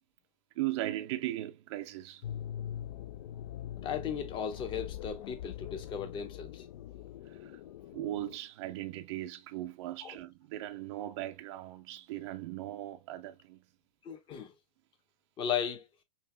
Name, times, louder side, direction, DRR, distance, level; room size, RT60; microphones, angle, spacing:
voice 1, 0.6-2.2 7.3-7.5 7.9-13.6, right 15 dB, 45° right, 0.5 m, -38 dB
sound 1, 2.2-8.4, left 11 dB, 55° left, 0.4 m, -43 dB
voice 2, 3.8-6.6 10.0-10.2 14.0-14.5 15.4-15.8, left 8 dB, 25° left, 1.0 m, -36 dB
5.5 x 2.4 x 2.2 m
hypercardioid pair, 120°, 20 cm